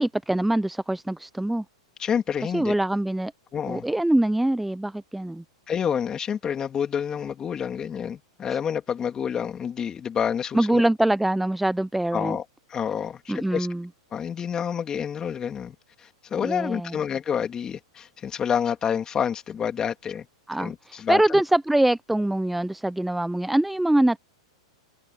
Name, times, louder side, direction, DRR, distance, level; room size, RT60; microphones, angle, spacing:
voice 1, 0.0-1.6 2.5-3.3 3.7-5.4 8.5-8.6 10.5-12.4 13.3-13.9 16.4-17.0 20.5-24.2, right 1 dB, 5° right, 0.4 m, -24 dB
voice 2, 2.0-2.8 3.5-3.9 5.7-10.8 12.1-12.4 12.7-13.7 14.1-20.3 20.6-21.4, left 8 dB, 20° left, 2.8 m, -28 dB
hypercardioid pair, 125°, 3 cm